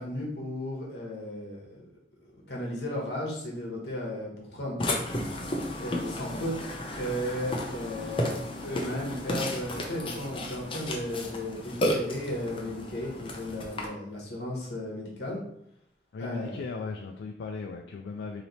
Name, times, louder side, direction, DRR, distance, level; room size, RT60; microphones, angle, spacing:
voice 1, 0.0-1.7 2.2-5.0 5.8-6.5 6.9-15.4 16.2-16.6, left 1 dB, 65° left, -2 dB, 1.2 m, -35 dB
Burping eructation, 4.8-13.9, left 1 dB, 30° left, 0.6 m, -33 dB
voice 2, 16.1-18.4, left 4 dB, 85° left, 3 dB, 0.3 m, -37 dB
3.2 x 2.9 x 4.1 m, 0.74 s
head